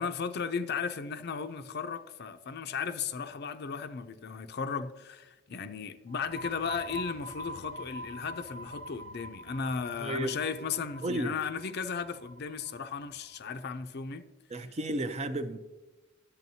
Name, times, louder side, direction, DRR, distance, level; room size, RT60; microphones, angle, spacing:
voice 1, 0.0-14.2, left 5 dB, 55° left, 0.5 m, -35 dB
sound 1, 6.1-13.5, equal, 80° right, 1.1 m, -44 dB
voice 2, 10.0-10.4 11.0-11.3 14.5-15.6, right 1 dB, 30° right, 0.5 m, -32 dB
10.5 x 8.0 x 2.7 m
head